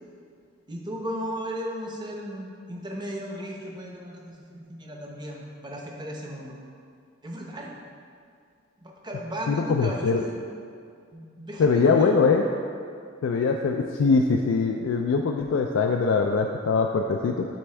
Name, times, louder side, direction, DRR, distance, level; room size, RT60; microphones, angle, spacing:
voice 1, 0.7-6.5 7.2-7.7 8.8-10.5 11.1-12.2, equal, 25° right, -1 dB, 0.7 m, -36 dB
voice 2, 9.5-10.2 11.6-12.5 13.2-17.4, left 4 dB, 85° left, 2 dB, 0.3 m, -22 dB
9.4 x 3.5 x 3.3 m, 2.3 s
head